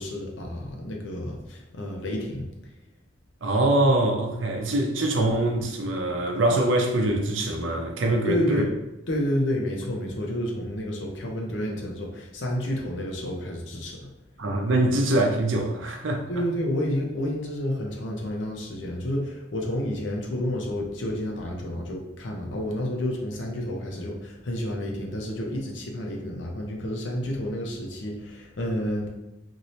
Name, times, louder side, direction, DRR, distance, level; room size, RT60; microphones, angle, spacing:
voice 1, 0.0-2.5 8.3-8.7 9.1-14.1 16.3-29.1, equal, 70° left, 0.7 m, -30 dB
voice 2, 3.4-8.6 14.4-16.2, right 1 dB, 80° right, 0.6 m, -23 dB
3.1 x 2.6 x 2.7 m
head